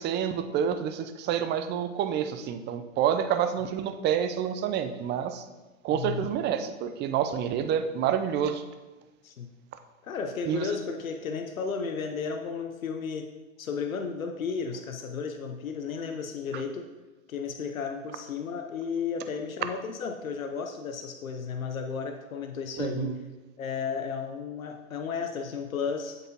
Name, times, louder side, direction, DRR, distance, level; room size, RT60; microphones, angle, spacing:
voice 1, 0.0-5.4 5.8-8.6 10.5-10.7 22.8-23.2, right 9 dB, 25° right, 9 dB, 0.6 m, -28 dB
voice 2, 5.9-6.3 9.2-9.5 10.0-13.3 13.6-16.8 17.3-23.1 23.6-26.2, left 5 dB, 85° left, 5 dB, 0.8 m, -33 dB
8.1 x 7.9 x 2.9 m, 1.2 s
hypercardioid pair, 105°, 40 cm